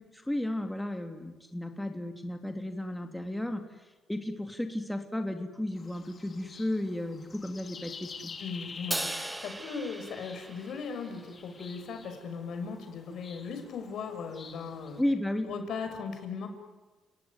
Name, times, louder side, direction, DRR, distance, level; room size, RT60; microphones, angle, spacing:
voice 1, 0.1-3.6 4.1-8.3 15.0-15.5, left 1 dB, 5° left, 5 dB, 2.6 m, -33 dB
sound 1, 5.7-15.0, left 5 dB, 45° left, 2.6 m, -49 dB
voice 2, 8.4-15.0 15.5-16.5, left 5 dB, 70° left, 6 dB, 5.9 m, -38 dB
Crash cymbal, 8.9-11.3, right 1 dB, 10° right, 1.3 m, -37 dB
30.0 x 18.5 x 9.7 m, 1.2 s
cardioid pair, 90°, 0 cm